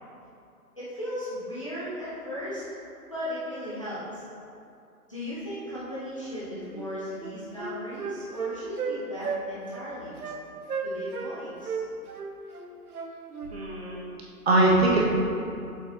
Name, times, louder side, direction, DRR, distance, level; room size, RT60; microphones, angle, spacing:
voice 1, 0.8-2.6 3.0-4.2 5.1-10.2 10.8-11.7, equal, 20° left, -10 dB, 0.8 m, -36 dB
Wind instrument woodwind instrument, 6.7-6.9 7.2-9.0 9.2-9.4 9.7-9.9 10.2-10.4 10.7-11.3 11.6-13.5, right 5 dB, 70° right, 0.9 m, -33 dB
voice 2, 13.5-14.0 14.4-15.0, right 2 dB, 40° right, -4 dB, 1.6 m, -21 dB
8.2 x 7.2 x 3.0 m, 2.6 s
hypercardioid pair, 175°, 47 cm